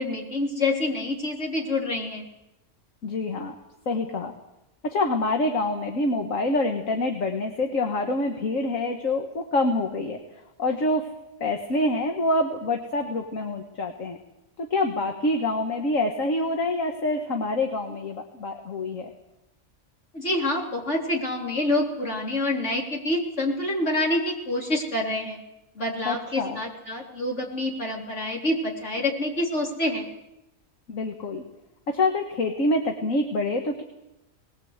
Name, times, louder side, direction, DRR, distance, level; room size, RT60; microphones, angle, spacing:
voice 1, 0.0-2.3 20.1-25.4 25.8-30.1, left 1 dB, 60° left, 0 dB, 3.9 m, -27 dB
voice 2, 3.0-3.6 3.9-4.3 4.8-10.2 10.6-11.1 11.4-14.2 14.6-19.1 26.1-26.6 30.9-31.4 31.9-33.8, left 2 dB, 75° left, 4 dB, 1.9 m, -26 dB
20.0 x 19.0 x 8.1 m, 0.93 s
omnidirectional pair, 1.4 m